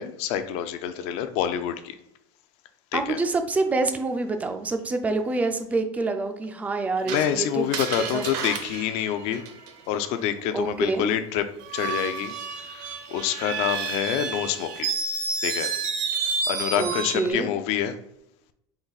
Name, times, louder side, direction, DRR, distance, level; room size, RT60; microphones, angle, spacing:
voice 1, 0.0-1.9 2.9-3.2 7.1-9.4 9.9-11.4 11.7-12.3 12.7-14.9 15.4-15.7 16.1-18.0, left 10 dB, 55° left, 9 dB, 0.4 m, -27 dB
voice 2, 2.9-7.7 8.1-8.2 10.5-11.1 16.8-17.5, right 3 dB, 10° right, 7 dB, 0.3 m, -26 dB
Screech, 7.1-10.0 11.6-17.3, right 5 dB, 60° right, 0.7 m, -30 dB
4.0 x 2.6 x 3.9 m, 0.79 s
cardioid pair, 160°, 13 cm